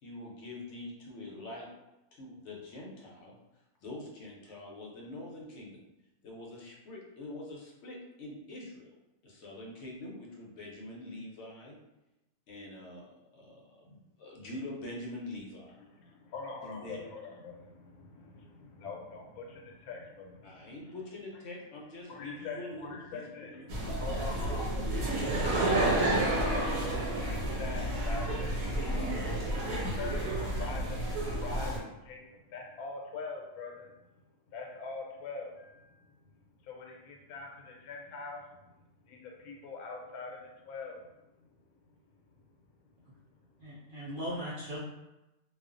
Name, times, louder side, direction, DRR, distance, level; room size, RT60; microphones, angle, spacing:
voice 1, 0.0-1.7 2.1-3.4 3.8-5.9 6.2-8.9 9.2-11.8 12.5-15.8 16.6-17.0 20.4-23.2 23.5-23.7, left 2 dB, 65° left, -2 dB, 0.8 m, -44 dB
voice 2, 15.7-21.0 22.1-34.1 34.5-36.4 36.6-38.7 39.0-43.8, left 4 dB, 85° left, 0 dB, 1.0 m, -45 dB
sound 1, 23.7-31.8, right 1 dB, 90° right, 1.2 m, -30 dB
voice 3, 43.6-44.8, equal, 60° right, -8 dB, 0.5 m, -38 dB
2.4 x 2.3 x 2.4 m, 0.96 s
omnidirectional pair, 1.5 m